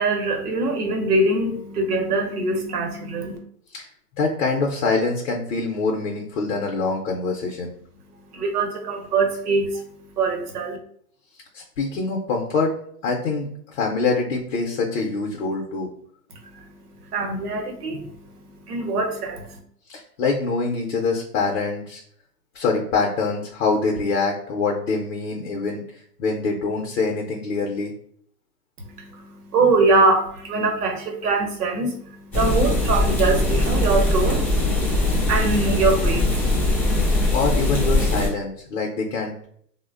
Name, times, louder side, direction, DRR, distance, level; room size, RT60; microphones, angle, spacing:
voice 1, 0.0-3.4 8.3-10.8 16.3-19.6 28.8-36.6, right 3 dB, 70° right, 3 dB, 0.9 m, -23 dB
voice 2, 4.2-7.7 11.5-12.7 13.0-15.9 19.9-22.0 22.5-25.8 26.2-27.9 37.3-39.5, left 4 dB, 50° left, 1 dB, 0.6 m, -24 dB
sound 1, 32.3-38.3, left 1 dB, 5° left, 0.3 m, -21 dB
3.1 x 2.1 x 2.3 m, 0.65 s
hypercardioid pair, 135°, 47 cm